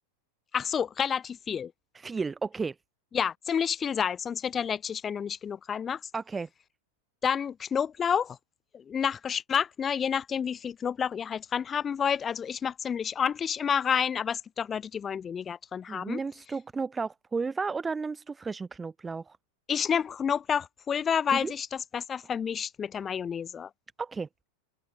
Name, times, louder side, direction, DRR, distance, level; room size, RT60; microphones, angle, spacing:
voice 1, 0.5-1.7 3.1-6.0 7.2-8.4 8.7-16.2 19.7-23.7, left 7 dB, 20° left, 0.9 m, -29 dB
voice 2, 1.9-2.8 6.1-6.5 15.9-19.4 21.3-21.5 24.0-24.3, right 4 dB, 15° right, 0.6 m, -33 dB
open air
figure-of-eight pair, 90°, 0 cm